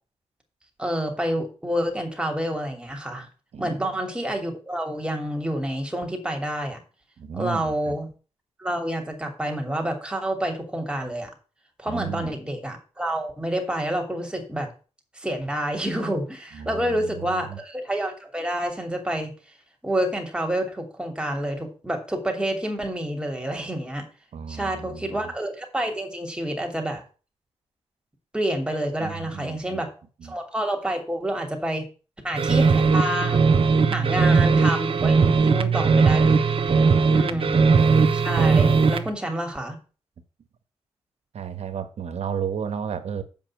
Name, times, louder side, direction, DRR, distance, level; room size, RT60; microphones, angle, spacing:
voice 1, 0.8-3.3 3.6-6.8 7.3-8.1 8.6-11.3 11.8-14.7 15.2-19.3 19.8-24.1 24.5-27.0 28.3-29.9 30.2-31.9 32.2-33.5 33.9-36.6 37.1-37.7 38.1-39.8, right 1 dB, 10° right, 2.8 m, -28 dB
voice 2, 3.5-3.9 7.2-8.0 11.9-12.3 16.5-17.6 24.3-25.3 29.0-29.8 30.2-30.4 34.0-34.2 35.3-35.9 37.3-37.4 41.3-43.2, right 7 dB, 80° right, 1.3 m, -34 dB
sound 1, 32.3-39.1, right 5 dB, 55° right, 1.1 m, -19 dB
7.5 x 5.7 x 7.6 m
cardioid pair, 90°, 11 cm